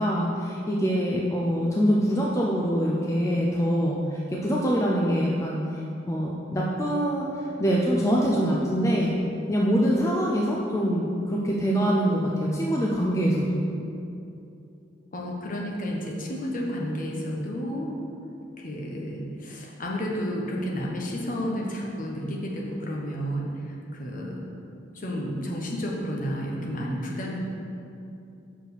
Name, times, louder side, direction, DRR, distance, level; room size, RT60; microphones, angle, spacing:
voice 1, 0.0-5.6 6.1-7.3 7.6-9.1 9.5-13.6, equal, 15° left, -4 dB, 0.5 m, -24 dB
voice 2, 15.1-17.9 18.6-24.5 24.9-27.4, equal, 45° left, -2 dB, 1.1 m, -31 dB
6.0 x 4.9 x 6.7 m, 2.7 s
head